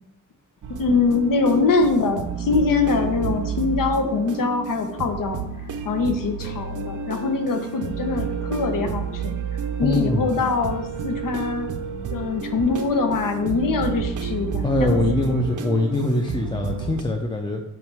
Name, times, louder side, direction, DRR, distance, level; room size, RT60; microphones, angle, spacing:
sound 1, 0.6-17.0, right 6 dB, 70° right, 0.7 m, -30 dB
voice 1, 0.8-5.4 5.8-9.3 9.8-11.7 12.1-15.0, left 4 dB, 80° left, 6 dB, 1.0 m, -23 dB
voice 2, 9.8-10.3 14.6-17.6, left 1 dB, 15° left, 2 dB, 0.5 m, -23 dB
7.7 x 5.3 x 3.4 m, 0.85 s
wide cardioid pair, 155°, 32 cm